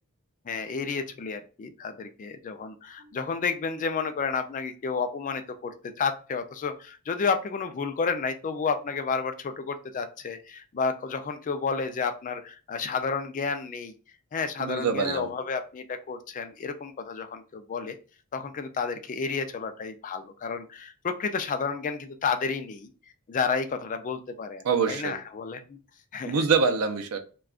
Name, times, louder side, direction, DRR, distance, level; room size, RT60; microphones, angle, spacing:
voice 1, 0.5-13.9 14.3-18.0 18.3-22.9 23.3-25.8 26.1-26.4, left 5 dB, 35° left, 0.3 m, -31 dB
voice 2, 14.6-15.3 24.6-25.1 26.2-27.2, right 5 dB, 80° right, 0.5 m, -25 dB
2.4 x 2.2 x 3.6 m
head